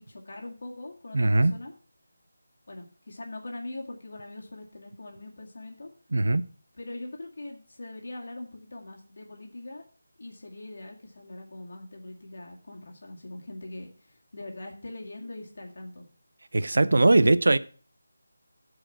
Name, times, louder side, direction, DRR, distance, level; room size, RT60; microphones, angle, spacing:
voice 1, 0.0-1.7 2.7-5.9 6.7-9.8 10.2-16.1, left 2 dB, 50° left, 2.1 m, -42 dB
voice 2, 1.1-1.5 6.1-6.4 16.5-17.6, right 2 dB, 65° right, 0.6 m, -20 dB
13.0 x 4.9 x 5.9 m
figure-of-eight pair, 180°, 0 cm